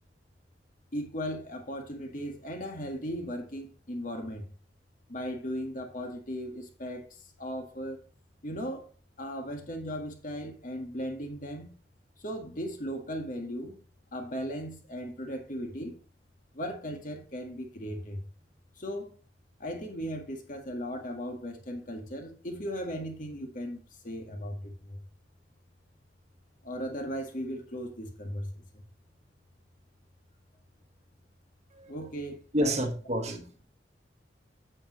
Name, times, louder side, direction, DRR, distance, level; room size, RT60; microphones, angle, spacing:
voice 1, 0.9-4.5 5.1-8.0 8.4-8.8 9.2-11.8 12.2-13.8 14.1-16.0 16.5-18.2 18.8-19.2 19.6-25.0 26.6-28.8 31.9-32.8 33.3-33.4, equal, 50° left, 3 dB, 1.8 m, -37 dB
voice 2, 32.5-33.4, equal, 40° right, 5 dB, 1.5 m, -29 dB
8.7 x 7.4 x 3.1 m, 0.38 s
head